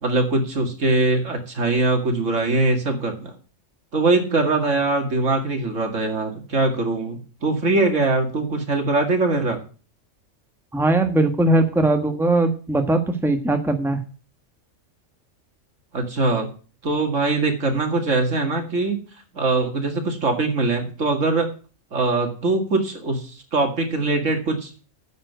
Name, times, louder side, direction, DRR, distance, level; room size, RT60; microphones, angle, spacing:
voice 1, 0.0-3.3 3.9-9.6 15.9-16.5 16.8-19.0 19.3-21.5 21.9-24.8, right 3 dB, 75° right, 4 dB, 2.5 m, -22 dB
voice 2, 10.7-14.0, right 2 dB, ahead, 6 dB, 1.3 m, -20 dB
9.3 x 7.5 x 8.1 m, 0.38 s
omnidirectional pair, 1.3 m